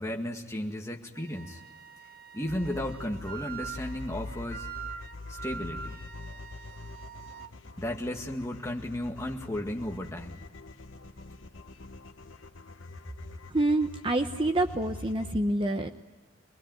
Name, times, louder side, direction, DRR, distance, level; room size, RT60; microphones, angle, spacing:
voice 1, 0.0-1.6 2.3-4.7 5.3-6.0 7.8-10.4, left 1 dB, 15° left, 1 dB, 2.0 m, -34 dB
Wind instrument woodwind instrument, 1.2-7.5, right 7 dB, 50° right, 0.9 m, -44 dB
sound 1, 2.4-15.3, left 3 dB, 75° left, 0.9 m, -45 dB
voice 2, 13.5-15.9, right 2 dB, 25° right, 7 dB, 0.8 m, -27 dB
24.5 x 21.5 x 9.3 m, 1.3 s
head